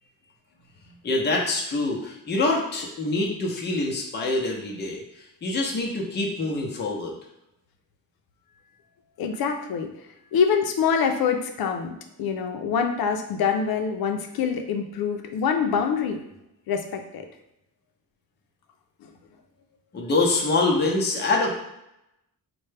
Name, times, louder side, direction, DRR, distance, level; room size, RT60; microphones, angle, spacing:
voice 1, 1.0-7.1 19.9-21.6, left 2 dB, 30° left, -1 dB, 0.6 m, -25 dB
voice 2, 9.2-9.9 10.3-16.2 16.7-17.3 19.0-19.1, left 6 dB, 85° left, 5 dB, 0.6 m, -25 dB
4.3 x 2.2 x 3.2 m, 0.84 s
wide cardioid pair, 145°, 35 cm